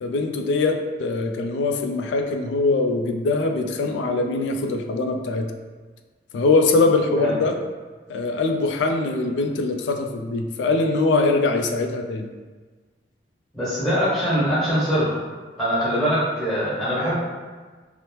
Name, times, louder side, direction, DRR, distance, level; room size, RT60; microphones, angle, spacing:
voice 1, 0.0-5.5 6.3-7.6 8.1-12.3, left 3 dB, 75° left, 5 dB, 0.3 m, -22 dB
voice 2, 13.5-15.1 15.6-17.1, equal, ahead, -10 dB, 1.3 m, -22 dB
2.9 x 2.0 x 3.1 m, 1.4 s
head